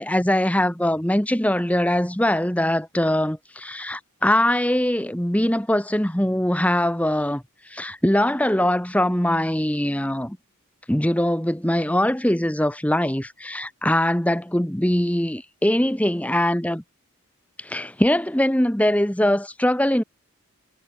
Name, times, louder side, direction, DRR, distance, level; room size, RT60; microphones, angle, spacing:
voice 1, 0.0-10.4 10.9-16.8 17.6-20.0, left 1 dB, 5° left, 1.1 m, -22 dB
head